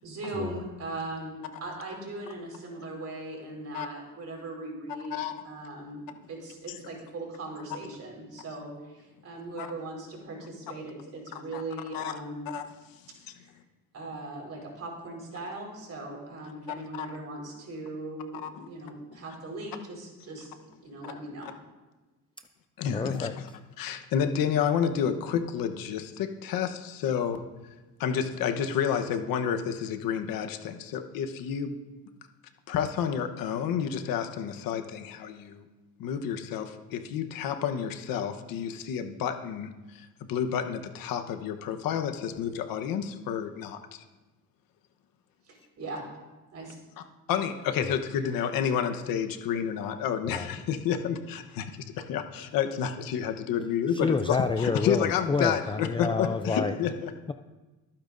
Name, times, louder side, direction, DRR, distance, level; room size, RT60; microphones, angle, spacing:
voice 1, 0.0-12.5 13.3-13.5 13.9-18.4 18.7-20.5 20.8-21.5 45.5-46.0 46.5-46.7, right 2 dB, 50° right, -1 dB, 4.7 m, -39 dB
voice 2, 11.3-11.6 11.9-12.1 12.5-12.6 16.9-17.1 18.4-18.7 22.8-23.3 23.8-27.4 28.0-31.7 32.7-35.7 36.0-44.0 47.3-57.1, left 8 dB, 80° left, 7 dB, 1.1 m, -30 dB
voice 3, 22.9-23.6 47.8-48.0 50.2-50.6 53.9-56.8, left 4 dB, 15° left, 7 dB, 0.4 m, -29 dB
24.0 x 8.8 x 2.6 m, 1.2 s
cardioid pair, 105°, 34 cm